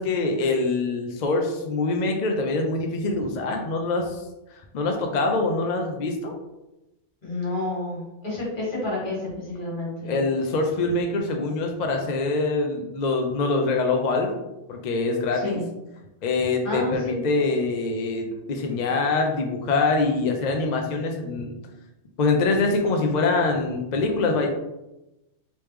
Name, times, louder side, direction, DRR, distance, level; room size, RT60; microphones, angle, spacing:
voice 1, 0.0-4.2 4.5-6.3 10.0-14.4 14.7-15.6 16.2-21.5 22.2-24.5, left 3 dB, 65° left, 3 dB, 0.4 m, -24 dB
voice 2, 7.2-10.2 15.3-15.6 16.6-17.2, left 2 dB, 45° left, -6 dB, 1.5 m, -30 dB
3.3 x 3.0 x 3.1 m, 0.96 s
omnidirectional pair, 1.2 m